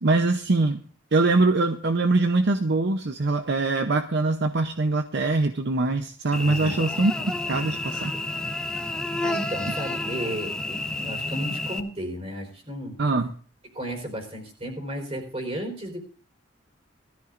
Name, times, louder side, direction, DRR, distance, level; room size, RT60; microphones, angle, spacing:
voice 1, 0.0-0.8 1.1-7.1 7.5-8.1 13.0-13.3, right 3 dB, 60° right, 7 dB, 0.7 m, -23 dB
Cricket / Buzz, 6.3-11.8, left 2 dB, 5° left, 1.0 m, -30 dB
voice 2, 6.4-6.8 8.7-8.9 9.2-13.0 13.7-16.0, equal, 30° right, 3 dB, 4.3 m, -34 dB
19.5 x 13.5 x 2.6 m, 0.43 s
head